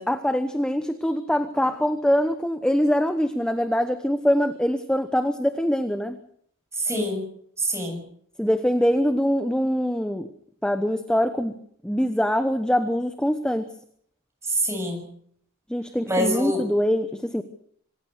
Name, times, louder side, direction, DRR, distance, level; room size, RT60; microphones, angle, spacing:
voice 1, 0.0-6.2 8.4-10.3 10.6-11.5 11.8-13.7 15.7-17.4, equal, 5° left, 9 dB, 1.0 m, -23 dB
voice 2, 6.8-7.3 7.6-8.0 14.5-15.0 16.1-16.6, equal, 15° right, 3 dB, 7.1 m, -25 dB
26.0 x 16.0 x 6.6 m, 0.65 s
head